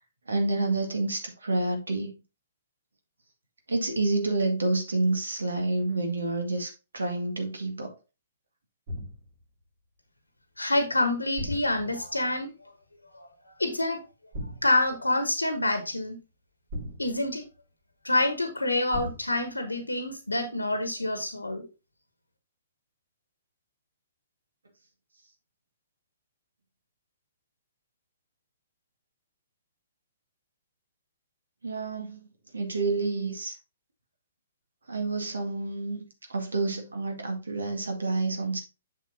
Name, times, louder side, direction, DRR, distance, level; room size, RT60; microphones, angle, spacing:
voice 1, 0.3-2.1 3.7-7.9 31.6-32.3 32.5-33.6 34.9-38.6, right 2 dB, 75° right, 1.9 m, -29 dB
sound 1, 8.9-9.4 11.4-12.1 14.3-14.9 16.7-17.5 18.9-19.5, left 1 dB, 45° right, 3.1 m, -37 dB
voice 2, 10.6-12.5 13.1-14.0 14.6-16.2 17.0-17.4 18.0-21.7, left 2 dB, 90° left, 1.2 m, -27 dB
7.3 x 6.7 x 2.8 m
figure-of-eight pair, 125°, 0 cm